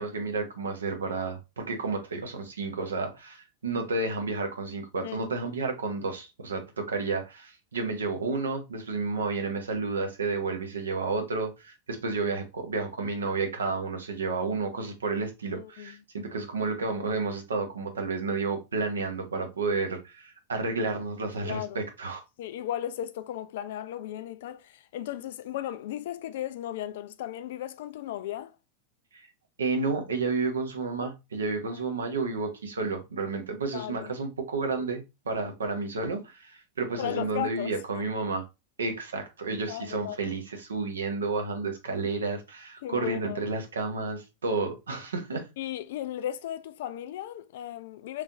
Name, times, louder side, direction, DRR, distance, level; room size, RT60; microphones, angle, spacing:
voice 1, 0.0-22.2 29.1-29.3 29.6-38.5 38.8-45.5, right 3 dB, 70° right, 0.8 m, -31 dB
voice 2, 15.5-16.0 21.4-21.8 22.4-28.6 31.7-31.8 33.7-34.2 37.0-38.1 39.7-40.2 42.8-43.4 45.6-48.2, left 12 dB, 55° left, 0.3 m, -36 dB
3.3 x 3.0 x 2.4 m
figure-of-eight pair, 90°, 0 cm